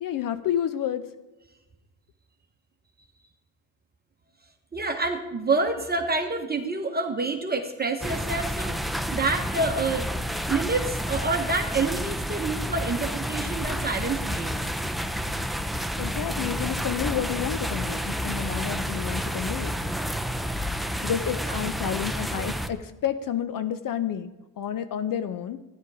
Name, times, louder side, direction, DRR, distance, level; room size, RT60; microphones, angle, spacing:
voice 1, 0.0-1.1 16.0-19.7 21.0-25.6, left 9 dB, 45° left, 12 dB, 0.7 m, -30 dB
voice 2, 4.7-10.1 10.5-14.6 21.5-21.6, right 3 dB, 20° right, 4 dB, 1.2 m, -28 dB
sound 1, 8.0-22.7, equal, ahead, 0.6 m, -30 dB
13.0 x 10.5 x 4.9 m, 1.1 s
supercardioid pair, 90°, 46 cm